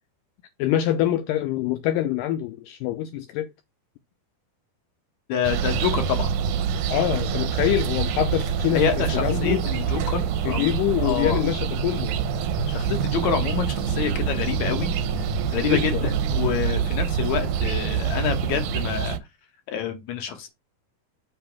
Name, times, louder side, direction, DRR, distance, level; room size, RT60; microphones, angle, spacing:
voice 1, 0.6-3.5 6.9-8.8 9.1-9.6 10.4-12.1 15.7-16.1, left 13 dB, 85° left, 1.9 m, -25 dB
voice 2, 5.3-6.3 8.7-10.7 11.0-11.4 12.7-14.9 15.2-15.3 15.5-19.2 19.7-20.5, left 7 dB, 65° left, 1.9 m, -27 dB
sound 1, 5.4-19.2, right 7 dB, 80° right, 1.8 m, -26 dB
6.9 x 2.8 x 5.8 m
omnidirectional pair, 4.4 m